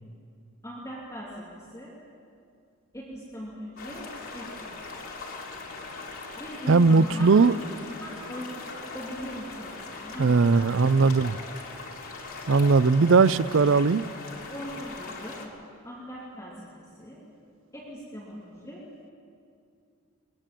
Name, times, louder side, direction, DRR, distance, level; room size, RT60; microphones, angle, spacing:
voice 1, 0.6-1.9 2.9-4.1 4.3-4.6 6.3-10.9 14.5-15.4 15.8-17.2 17.7-18.8, equal, 15° left, -6 dB, 2.9 m, -40 dB
sound 1, 3.8-15.5, left 3 dB, 75° left, 3.3 m, -40 dB
voice 2, 6.7-7.5 10.2-11.4 12.5-14.0, right 4 dB, 60° right, 16 dB, 0.5 m, -19 dB
21.0 x 21.0 x 7.6 m, 2.4 s
head